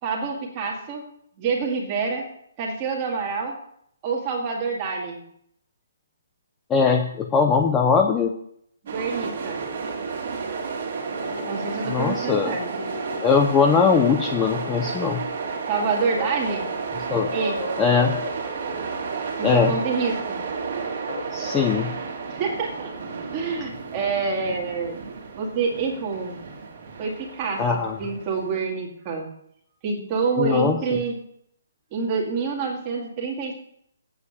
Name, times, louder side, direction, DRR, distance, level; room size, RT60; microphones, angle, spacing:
voice 1, 0.0-1.1 1.4-2.3 2.6-3.6 4.0-5.2 8.8-9.6 11.5-12.9 15.7-16.7 17.3-17.7 19.4-20.4 22.3-22.9 23.3-25.0 25.4-26.4 27.0-27.7 28.0-29.3 29.8-31.2 31.9-33.5, right 5 dB, 15° right, -1 dB, 2.0 m, -27 dB
voice 2, 6.7-8.3 11.9-12.6 13.2-15.2 17.1-17.3 17.8-18.1 19.4-19.7 21.3-21.9 27.6-28.0 30.4-31.0, left 5 dB, 10° left, 3 dB, 0.5 m, -20 dB
sound 1, 8.9-28.6, right 5 dB, 35° right, 2.3 m, -32 dB
sound 2, 11.1-12.2 12.8-13.3 13.7-15.6 16.1-16.3 17.3-18.3 21.1-21.3 21.5-21.6, left 2 dB, 55° left, 1.8 m, -35 dB
8.6 x 7.5 x 8.3 m, 0.71 s
hypercardioid pair, 180°, 0 cm